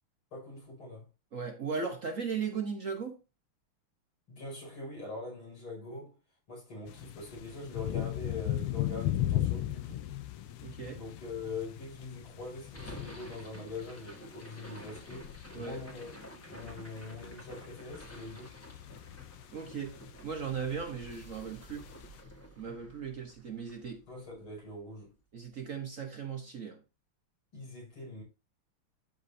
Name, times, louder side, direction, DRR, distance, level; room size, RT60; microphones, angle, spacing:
voice 1, 0.3-1.1 4.3-6.2 6.5-10.1 10.9-16.1 16.5-18.6 24.1-25.2 27.5-28.2, left 3 dB, 70° left, 6.7 m, -43 dB
voice 2, 1.3-3.2 10.6-11.0 15.5-15.8 19.5-21.9 22.6-24.0 25.3-26.8, right 6 dB, 45° right, 1.1 m, -37 dB
sound 1, 6.9-22.2, left 13 dB, 85° left, 1.7 m, -38 dB
sound 2, 12.7-24.9, equal, 10° left, 1.2 m, -51 dB
13.0 x 5.2 x 2.7 m
omnidirectional pair, 2.4 m